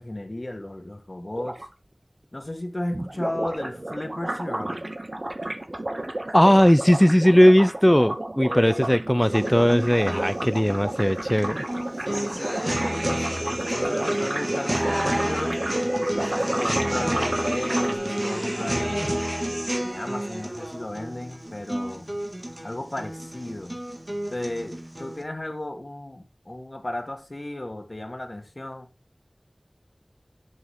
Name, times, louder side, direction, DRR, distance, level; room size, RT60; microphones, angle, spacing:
voice 1, 0.0-1.6 2.3-4.8 8.4-8.8 12.0-15.6 16.1-19.1 19.8-22.1 22.6-23.8 24.3-28.9, left 1 dB, 50° left, 1.6 m, -34 dB
sound 1, 1.4-1.7 2.9-18.0, right 1 dB, 50° right, 0.9 m, -32 dB
voice 2, 6.3-11.6, equal, 10° left, 0.3 m, -18 dB
sound 2, 9.2-25.2, right 1 dB, 35° right, 1.8 m, -29 dB
8.1 x 7.3 x 3.6 m
wide cardioid pair, 45°, 0 cm